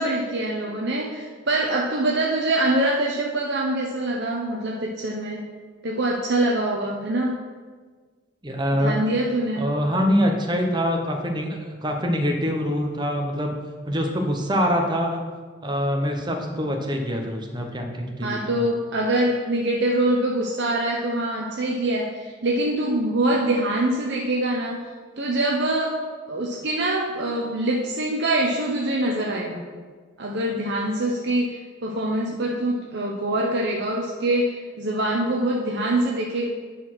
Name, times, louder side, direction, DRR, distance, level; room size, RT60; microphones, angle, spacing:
voice 1, 0.0-5.4 5.8-7.3 8.7-9.7 18.2-24.8 25.2-26.0 26.3-29.6 30.2-36.5, right 1 dB, 55° right, -1 dB, 0.8 m, -24 dB
voice 2, 8.4-9.0 9.6-13.5 13.8-15.2 15.6-18.6, equal, 20° right, 3 dB, 0.9 m, -24 dB
10.0 x 4.1 x 6.1 m, 1.5 s
head